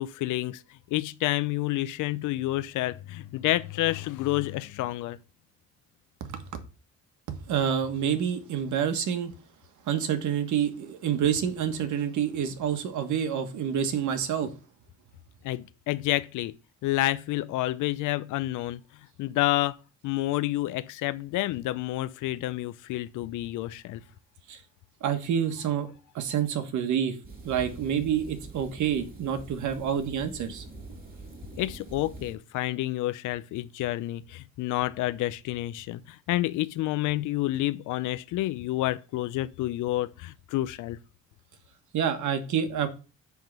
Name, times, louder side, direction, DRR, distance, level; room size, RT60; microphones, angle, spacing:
voice 1, 0.0-5.2 15.4-16.5 16.8-18.8 19.2-19.8 20.0-24.0 31.5-41.0, left 16 dB, 85° left, 0.5 m, -29 dB
voice 2, 7.3-9.3 9.9-14.5 24.5-24.6 25.0-25.9 26.1-27.2 27.4-30.6 41.9-42.9, right 8 dB, 75° right, 1.4 m, -28 dB
sound 1, 27.2-32.3, right 3 dB, 30° right, 5.3 m, -44 dB
9.3 x 3.6 x 6.6 m
cardioid pair, 90°, 30 cm